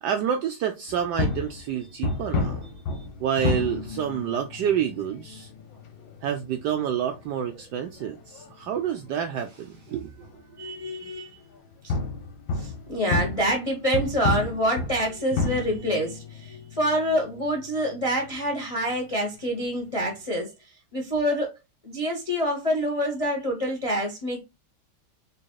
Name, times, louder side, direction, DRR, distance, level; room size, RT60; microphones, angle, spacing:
voice 1, 0.0-2.7 3.2-5.5 6.2-10.1, right 9 dB, 75° right, 1.0 m, -28 dB
sound 1, 0.9-20.2, left 4 dB, 70° left, 1.5 m, -33 dB
voice 2, 10.6-11.4 11.8-11.9 12.6-20.5 20.9-21.5 21.8-24.4, equal, 40° left, 0.5 m, -26 dB
4.1 x 3.6 x 2.2 m
omnidirectional pair, 2.2 m